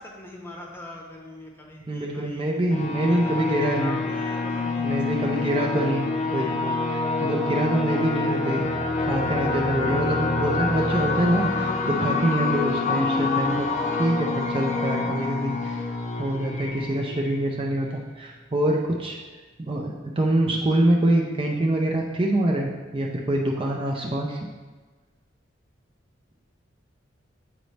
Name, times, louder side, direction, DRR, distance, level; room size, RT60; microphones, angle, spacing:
voice 1, 0.0-2.5 3.0-5.8, left 1 dB, 10° left, -1 dB, 0.8 m, -41 dB
voice 2, 1.9-4.0 4.8-6.0 6.3-8.7 9.0-13.7 14.0-15.8 16.2-19.2 19.6-24.4, right 1 dB, 25° right, -1 dB, 0.5 m, -25 dB
sound 1, 2.7-18.0, left 3 dB, 40° left, 0.5 m, -27 dB
7.9 x 4.0 x 3.2 m, 1.3 s
head